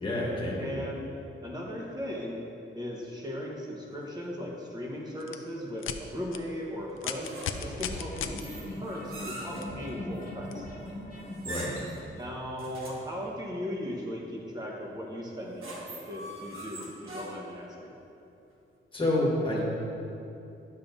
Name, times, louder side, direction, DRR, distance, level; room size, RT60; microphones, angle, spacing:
voice 1, 0.0-0.8 11.4-11.9 18.9-19.6, left 1 dB, 25° left, -4 dB, 1.5 m, -28 dB
voice 2, 0.6-1.1 1.4-2.4 2.7-7.3 7.6-10.7 12.2-17.9, equal, 20° right, -2 dB, 1.0 m, -37 dB
sound 1, 5.2-5.3 5.8-6.0 6.3-6.4 7.0-8.4 9.6-9.7 10.5-10.6, left 9 dB, 80° left, 0.4 m, -34 dB
sound 2, 7.2-7.8 8.4-9.7 11.3-12.0 12.6-13.1 15.3-17.6, right 1 dB, 80° right, 1.2 m, -42 dB
sound 3, 7.4-12.3, left 1 dB, 45° left, 1.1 m, -41 dB
10.0 x 6.7 x 2.6 m, 2.8 s
wide cardioid pair, 155°, 21 cm